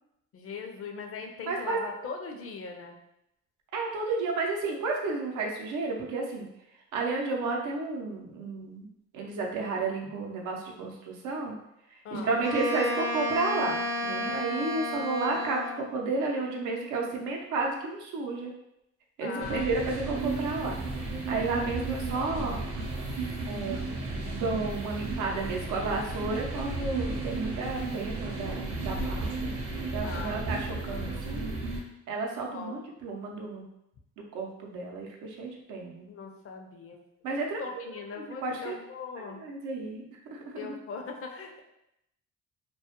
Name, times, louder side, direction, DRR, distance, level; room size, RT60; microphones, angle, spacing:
voice 1, 0.3-3.0 12.0-12.4 19.2-20.1 30.0-30.4 32.5-32.8 36.1-37.0 37.6-39.4 40.6-41.6, left 5 dB, 50° left, 3 dB, 0.5 m, -40 dB
voice 2, 1.5-1.8 3.7-6.5 6.9-8.9 9.1-11.6 12.1-18.5 19.2-20.8 21.3-22.6 23.5-23.9 24.3-29.5 29.9-31.5 32.1-33.7 34.2-36.0 37.2-37.6 38.3-38.8 39.3-40.0 40.3-40.8, right 3 dB, 85° right, 0 dB, 0.6 m, -32 dB
Wind instrument woodwind instrument, 12.4-15.9, equal, 10° right, 0.4 m, -32 dB
sound 1, 19.4-31.8, right 3 dB, 50° right, 0.7 m, -34 dB
2.2 x 2.0 x 2.8 m, 0.82 s
cardioid pair, 90°, 30 cm